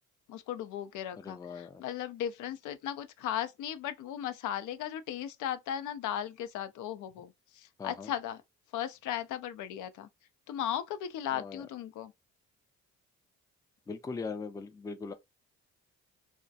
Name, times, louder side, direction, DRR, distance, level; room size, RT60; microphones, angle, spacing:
voice 1, 0.3-8.4 8.7-10.1 10.5-12.1, left 10 dB, 80° left, 0.4 m, -36 dB
voice 2, 1.2-1.8 7.8-8.1 11.3-11.6 13.9-15.1, left 4 dB, 10° left, 0.3 m, -40 dB
2.3 x 2.1 x 2.6 m
cardioid pair, 90°, 30 cm